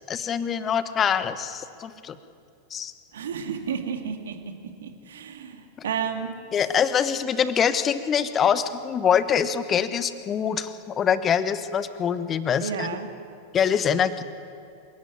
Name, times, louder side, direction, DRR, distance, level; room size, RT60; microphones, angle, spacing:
voice 1, 0.1-2.1 2.7-2.9 6.5-13.0 13.5-14.2, left 8 dB, 25° left, 13 dB, 1.2 m, -24 dB
voice 2, 3.1-4.4 4.8-6.3 12.6-13.1, right 7 dB, 65° right, 5 dB, 2.5 m, -31 dB
26.5 x 16.5 x 9.3 m, 2.5 s
figure-of-eight pair, 90°, 0 cm